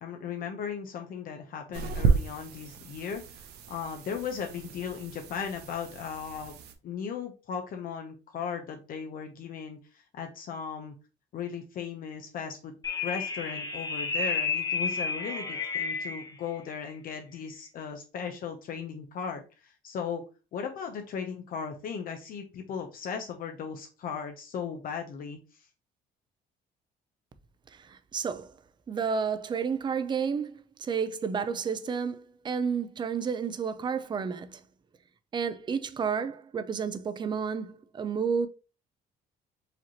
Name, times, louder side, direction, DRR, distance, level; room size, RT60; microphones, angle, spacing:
voice 1, 0.0-6.6 6.8-10.9 11.3-12.7 13.0-20.2 20.5-25.7, left 7 dB, 55° left, 0.7 m, -37 dB
sound 1, 1.7-6.7, right 5 dB, 75° right, 0.7 m, -32 dB
sound 2, 12.8-16.3, left 4 dB, 20° left, 0.7 m, -31 dB
voice 2, 27.7-28.5 28.9-34.6 35.3-38.5, right 6 dB, 25° right, 0.5 m, -31 dB
4.9 x 3.0 x 2.8 m
cardioid pair, 110°, 17 cm